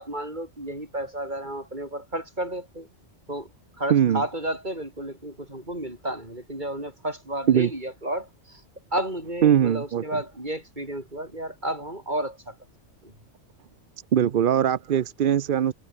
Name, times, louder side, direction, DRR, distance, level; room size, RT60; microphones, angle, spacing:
voice 1, 0.0-2.9 3.3-3.5 3.8-8.6 8.9-12.6 13.0-13.1, right 1 dB, 35° right, 7.9 m, -32 dB
voice 2, 3.9-4.2 7.5-7.7 9.4-10.0 14.1-15.7, right 9 dB, 55° right, 0.7 m, -21 dB
omnidirectional pair, 1.3 m